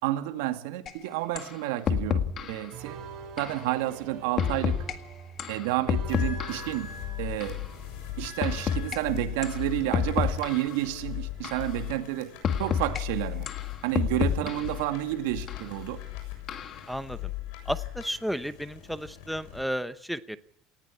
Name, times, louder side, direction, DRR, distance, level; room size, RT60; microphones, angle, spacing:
voice 1, 0.0-3.0 3.4-4.8 5.5-6.9 7.2-7.6 8.2-12.3 12.6-13.5 13.8-16.0, right 15 dB, 90° right, 8 dB, 2.1 m, -30 dB
sound 1, 0.9-1.0 1.4-1.5 1.9-2.6 3.4-3.6 4.4-4.9 5.4-6.8 7.4-7.6 8.4-9.0 9.4-9.6 9.9-10.8 11.4-11.7 12.4-13.0 13.5-14.8 15.5-15.6 16.5-16.9, left 8 dB, 40° left, 1.9 m, -29 dB
sound 2, 2.7-10.6 10.9-12.4 12.9-14.4, right 6 dB, 50° right, 6.9 m, -48 dB
sound 3, 6.1-19.6, left 14 dB, 70° left, 7.3 m, -39 dB
voice 2, 16.9-17.3 17.7-20.4, equal, ahead, 12 dB, 0.8 m, -33 dB
19.0 x 16.5 x 8.6 m, 0.72 s
cardioid pair, 130°, 0 cm